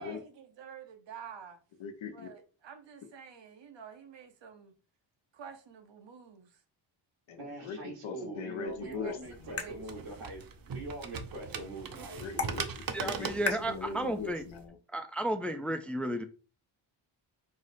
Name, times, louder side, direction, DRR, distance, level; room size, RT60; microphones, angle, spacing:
voice 1, 0.0-1.6 2.1-4.7 5.3-6.6 8.8-10.2 11.3-11.7, right 7 dB, 65° right, 1.0 m, -49 dB
voice 2, 1.8-2.3 7.3-9.7 12.2-14.8, left 5 dB, 70° left, 1.0 m, -41 dB
voice 3, 7.3-12.6, right 1 dB, 85° right, 1.8 m, -43 dB
sound 1, 8.7-14.7, left 4 dB, 30° left, 1.1 m, -43 dB
sound 2, 9.3-14.6, right 6 dB, 45° right, 0.7 m, -41 dB
voice 4, 12.9-14.4 14.9-16.2, right 1 dB, 5° left, 0.5 m, -33 dB
5.0 x 2.0 x 4.1 m
cardioid pair, 60°, 48 cm